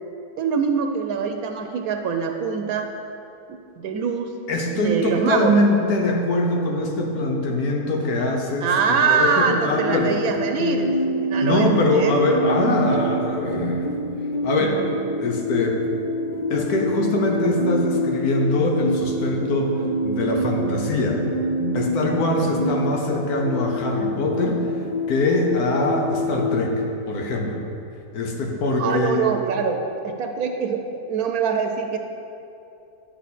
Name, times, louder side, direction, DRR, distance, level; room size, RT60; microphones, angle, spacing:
voice 1, 0.4-2.9 3.5-4.3 4.7-5.5 8.6-10.9 11.2-12.1 28.8-32.0, right 6 dB, 80° right, 5 dB, 1.0 m, -24 dB
voice 2, 4.5-8.7 9.1-10.1 11.4-13.9 14.4-14.8 15.2-15.8 16.5-21.2 21.7-24.7 25.1-26.8 27.1-27.6 28.1-29.3, left 1 dB, 85° left, 1 dB, 1.5 m, -22 dB
sound 1, 9.7-26.7, equal, 45° left, 0.6 m, -26 dB
10.5 x 6.0 x 4.2 m, 2.7 s
omnidirectional pair, 1.6 m